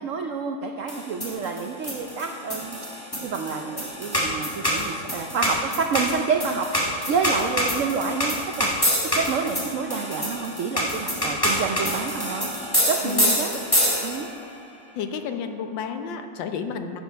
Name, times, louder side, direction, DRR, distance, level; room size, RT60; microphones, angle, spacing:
voice 1, 0.0-12.5 12.9-13.6 14.0-14.3, right 5 dB, 80° right, 4 dB, 0.7 m, -29 dB
sound 1, 0.9-14.4, equal, 10° left, 1.9 m, -26 dB
voice 2, 13.0-13.3 14.9-17.0, left 6 dB, 85° left, 7 dB, 1.5 m, -31 dB
10.5 x 8.7 x 4.6 m, 2.1 s
omnidirectional pair, 2.0 m